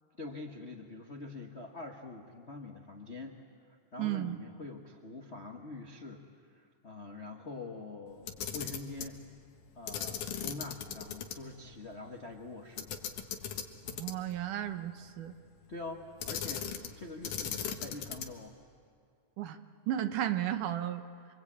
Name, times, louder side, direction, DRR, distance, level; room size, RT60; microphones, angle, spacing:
voice 1, 0.2-3.4 3.9-9.2 9.7-12.9 15.7-18.6, left 3 dB, 50° left, 1 dB, 0.7 m, -45 dB
voice 2, 4.0-4.4 13.9-15.3 19.4-19.6 19.9-21.0, right 12 dB, 85° right, 8 dB, 2.7 m, -34 dB
Camera, 8.2-9.1 9.9-11.4 11.7-11.8 12.8-14.4 16.2-17.0 17.2-18.4, left 8 dB, 80° left, 2.9 m, -38 dB
29.0 x 23.5 x 8.6 m, 2.2 s
omnidirectional pair, 3.6 m